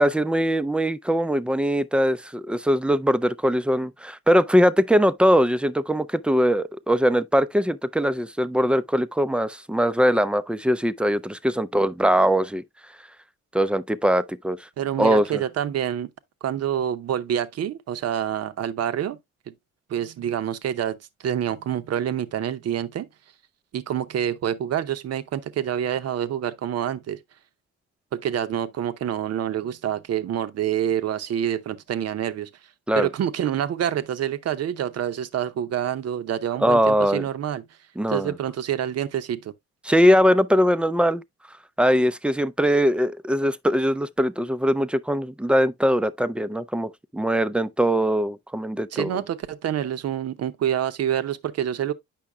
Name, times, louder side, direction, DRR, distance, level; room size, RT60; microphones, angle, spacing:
voice 1, 0.0-12.6 13.5-14.7 15.0-15.4 32.9-33.1 36.6-37.2 38.0-38.3 39.8-41.2 41.8-49.2, equal, 5° right, 0.3 m, -21 dB
voice 2, 14.8-16.1 16.4-19.2 19.5-19.6 19.9-23.1 23.7-27.2 28.1-32.5 33.0-37.6 38.1-39.5 48.9-51.9, right 10 dB, 55° right, 0.7 m, -27 dB
8.6 x 5.7 x 2.2 m
cardioid pair, 90°, 30 cm